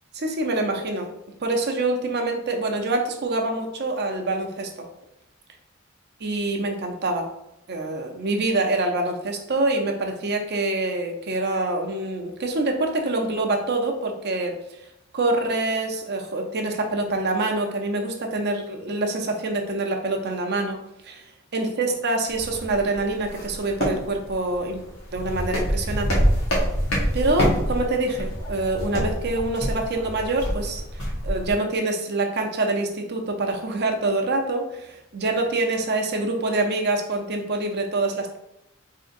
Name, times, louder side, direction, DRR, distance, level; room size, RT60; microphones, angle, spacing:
voice 1, 0.1-1.1 1.4-4.7 6.2-7.3 7.7-14.6 15.1-20.8 21.0-21.3 21.5-24.8 25.1-26.2 27.1-38.4, right 2 dB, 50° right, 3 dB, 0.7 m, -25 dB
sound 1, 22.3-31.5, equal, 75° left, 1.4 m, -27 dB
4.2 x 3.7 x 2.6 m, 0.85 s
head